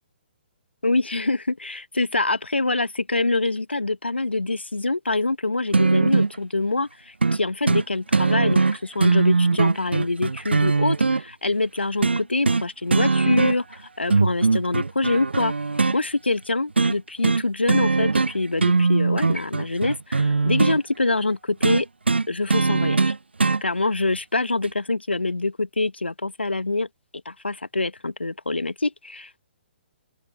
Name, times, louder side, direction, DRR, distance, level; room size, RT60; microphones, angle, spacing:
voice 1, 0.8-15.5 15.9-21.9 22.3-23.1 23.6-26.9 27.2-29.4, left 2 dB, 80° left, 1.2 m, -25 dB
sound 1, 5.7-6.4 7.2-7.4 7.7-7.8 8.1-11.2 12.0-12.6 12.9-13.7 14.1-16.0 16.8-17.0 17.2-17.4 17.7-18.3 18.6-20.8 21.6-23.6 24.6-24.7, right 3 dB, 75° right, 0.6 m, -20 dB
open air
figure-of-eight pair, 125°, 6 cm